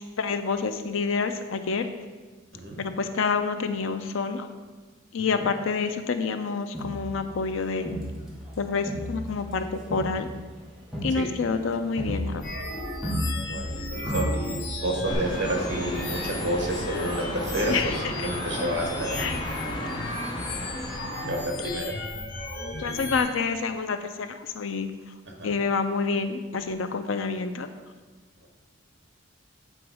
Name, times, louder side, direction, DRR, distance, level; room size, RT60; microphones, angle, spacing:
voice 1, 0.0-1.9 2.8-4.5 5.1-8.0 8.6-10.3 11.0-12.4 17.7-17.9 19.2-19.4 22.8-24.9 25.4-27.7, left 4 dB, 75° left, 8 dB, 0.5 m, -28 dB
Crowd, 6.7-8.5 8.9-13.8 14.1-14.7 15.1-15.2, equal, ahead, 1.2 m, -33 dB
sound 1, 12.4-23.2, left 2 dB, 50° left, 0.9 m, -35 dB
voice 2, 13.4-19.8 21.3-22.0 25.2-25.5 28.4-28.5, right 1 dB, 55° right, 1 dB, 1.2 m, -30 dB
sound 2, 15.0-21.6, left 1 dB, 20° left, 0.7 m, -34 dB
7.8 x 3.9 x 4.8 m, 1.3 s
head